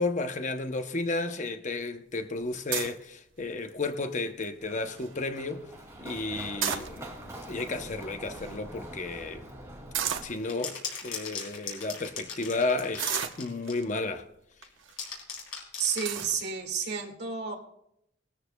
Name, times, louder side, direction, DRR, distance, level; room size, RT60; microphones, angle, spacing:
voice 1, 0.0-5.6 6.0-7.1 7.5-9.5 10.2-10.8 11.0-14.2, left 3 dB, 35° left, 0.7 m, -32 dB
sound 1, 2.7-3.0 3.7-4.0 4.4-4.5 4.7-5.1 6.4-7.3 8.0-8.1 8.3-8.5 9.9-10.4 11.1-11.2 11.7-11.9 13.0-13.8 14.6-14.9 15.4-15.5 16.0-16.4, right 9 dB, 70° right, 0.9 m, -32 dB
Run, 4.6-10.2, right 1 dB, 15° right, 2.3 m, -44 dB
sound 2, 10.3-13.9 14.6-16.1, left 6 dB, 80° left, 4.0 m, -38 dB
voice 2, 15.8-17.6, right 6 dB, 55° right, 2.0 m, -31 dB
19.5 x 13.5 x 2.3 m
head